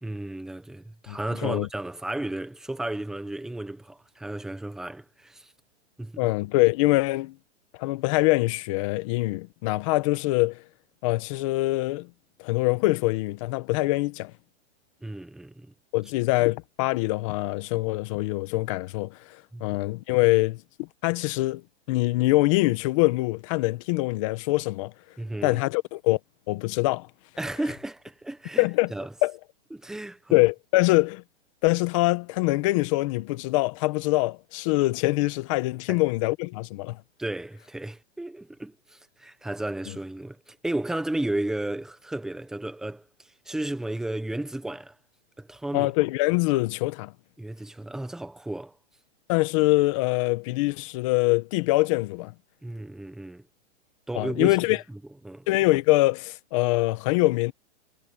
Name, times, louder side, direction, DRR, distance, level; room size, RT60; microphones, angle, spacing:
voice 1, 0.0-5.5 6.0-6.2 15.0-15.7 19.5-19.8 25.2-25.6 27.4-29.1 29.7-30.4 35.9-36.0 37.2-45.0 45.4-45.9 47.4-48.7 52.6-53.4 54.1-54.6 54.9-55.0 55.2-55.5, right 1 dB, ahead, 0.8 m, -33 dB
voice 2, 1.1-1.7 6.2-7.3 7.8-10.6 11.0-12.1 12.4-14.3 15.9-21.6 21.9-24.9 25.4-26.2 26.5-27.1 28.6-28.9 29.2-29.3 30.3-31.2 31.6-37.0 45.7-47.1 49.3-52.3 54.1-54.8 55.5-57.5, left 21 dB, 25° left, 0.9 m, -24 dB
hypercardioid pair, 165°, 35 cm